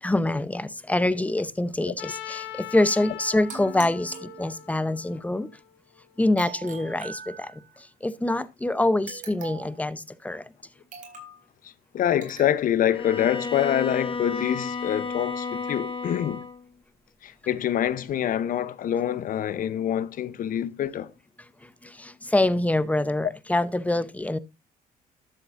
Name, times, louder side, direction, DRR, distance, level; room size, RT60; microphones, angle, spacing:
voice 1, 0.0-5.5 6.2-7.5 8.0-10.5 21.8-24.4, left 1 dB, 10° left, 0.7 m, -25 dB
Trumpet, 2.0-6.0, left 14 dB, 90° left, 1.3 m, -41 dB
sound 1, 3.5-4.9 6.4-7.8 9.1-9.8 10.9-11.4 12.2-12.6, right 6 dB, 50° right, 4.0 m, -42 dB
voice 2, 11.6-16.4 17.2-21.1, left 10 dB, 55° left, 0.8 m, -26 dB
Bowed string instrument, 12.9-16.6, left 4 dB, 30° left, 1.3 m, -32 dB
12.5 x 7.6 x 2.6 m
cardioid pair, 110°, 17 cm